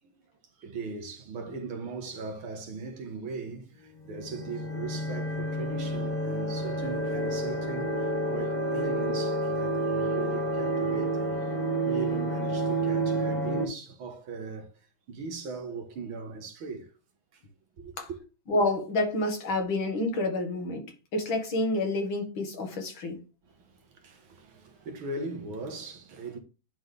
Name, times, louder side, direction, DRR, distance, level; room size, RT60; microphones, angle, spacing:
voice 1, 0.6-11.3 11.8-14.7 15.1-16.9 17.8-18.2 23.9-26.4, right 4 dB, 85° right, 2.1 m, -39 dB
sound 1, 4.1-13.6, right 1 dB, 30° left, 0.9 m, -29 dB
voice 2, 18.5-20.8 21.1-23.2, left 2 dB, 75° left, 2.5 m, -28 dB
10.5 x 4.0 x 3.4 m
omnidirectional pair, 2.2 m